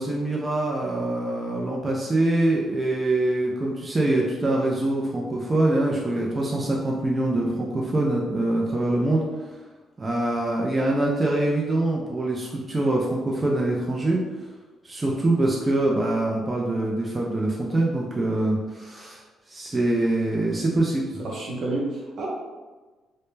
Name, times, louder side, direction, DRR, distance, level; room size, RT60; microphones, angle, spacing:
voice 1, 0.0-9.2 10.0-14.2 14.8-19.2 19.5-21.2, right 2 dB, 25° right, -3 dB, 0.4 m, -24 dB
voice 2, 21.2-22.3, right 2 dB, 65° right, -3 dB, 0.7 m, -29 dB
2.1 x 2.0 x 3.1 m, 1.3 s
cardioid pair, 90°, 0 cm